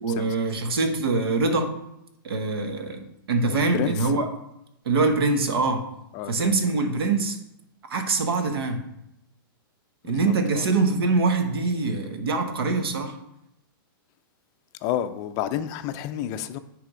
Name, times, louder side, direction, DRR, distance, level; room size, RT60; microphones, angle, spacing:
voice 1, 0.0-1.7 2.2-4.3 4.8-5.8 6.3-7.4 7.9-8.8 10.0-13.1, right 3 dB, 85° right, 1.2 m, -24 dB
voice 2, 3.5-4.0 6.1-6.6 10.0-10.7 14.8-16.6, left 11 dB, 30° left, 0.4 m, -30 dB
9.4 x 3.4 x 4.9 m
hypercardioid pair, 155°, 12 cm